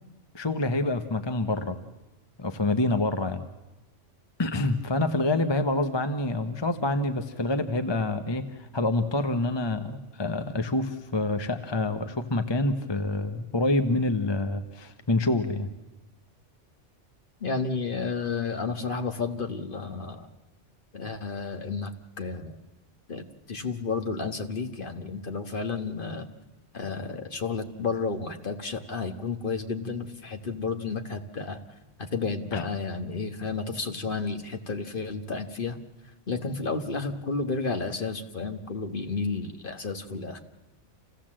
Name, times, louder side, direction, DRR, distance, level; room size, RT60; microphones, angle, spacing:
voice 1, 0.3-1.8 2.4-3.5 4.4-15.7 32.5-32.6, left 2 dB, 25° left, 8 dB, 0.9 m, -27 dB
voice 2, 17.4-20.3 20.9-22.6 23.1-26.3 26.7-31.6 32.0-35.8 36.3-40.4, left 4 dB, 45° left, 6 dB, 1.6 m, -32 dB
28.0 x 16.0 x 7.5 m, 1.1 s
omnidirectional pair, 1.2 m